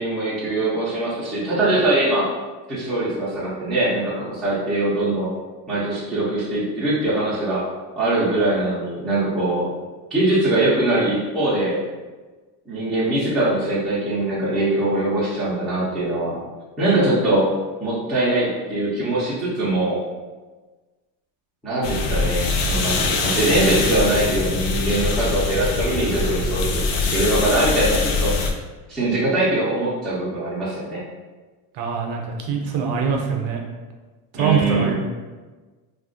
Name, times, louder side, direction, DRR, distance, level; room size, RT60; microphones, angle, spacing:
voice 1, 0.0-2.3 2.7-5.3 5.7-7.6 8.0-9.7 10.1-11.9 12.7-16.4 16.8-17.5 17.8-20.0 21.6-28.3 28.9-31.0 34.3-35.0, right 2 dB, ahead, -10 dB, 0.4 m, -22 dB
sound 1, 21.8-28.5, left 3 dB, 65° left, 0.6 m, -23 dB
voice 2, 31.7-33.6 34.3-35.0, right 5 dB, 60° right, 1 dB, 0.6 m, -23 dB
2.5 x 2.2 x 3.7 m, 1.3 s
cardioid pair, 165°, 48 cm